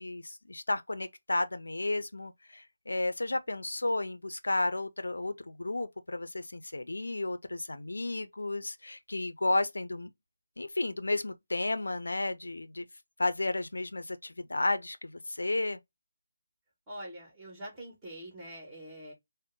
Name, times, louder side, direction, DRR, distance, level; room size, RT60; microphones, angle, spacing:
voice 1, 0.0-10.1 10.6-12.8 13.2-15.8, left 2 dB, 80° left, 0.5 m, -32 dB
voice 2, 16.9-19.1, right 1 dB, 15° right, 2.1 m, -44 dB
5.2 x 2.1 x 3.6 m
figure-of-eight pair, 155°, 0 cm